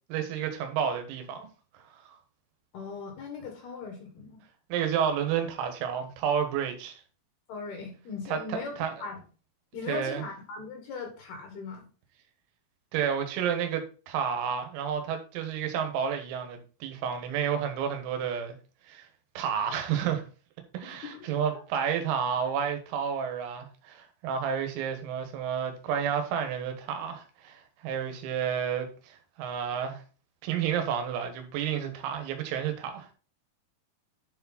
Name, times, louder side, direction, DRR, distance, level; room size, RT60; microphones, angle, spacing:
voice 1, 0.1-1.5 2.0-2.2 4.7-7.0 8.3-8.9 9.9-10.2 12.9-18.6 18.9-19.1 19.4-20.2 20.7-30.0 30.4-33.1, right 8 dB, 90° right, 4.0 m, -30 dB
voice 2, 2.7-4.4 7.5-9.2 9.7-11.9 20.8-21.3 21.7-21.8, left 4 dB, 60° left, 3.0 m, -39 dB
11.0 x 4.8 x 4.1 m
omnidirectional pair, 6.0 m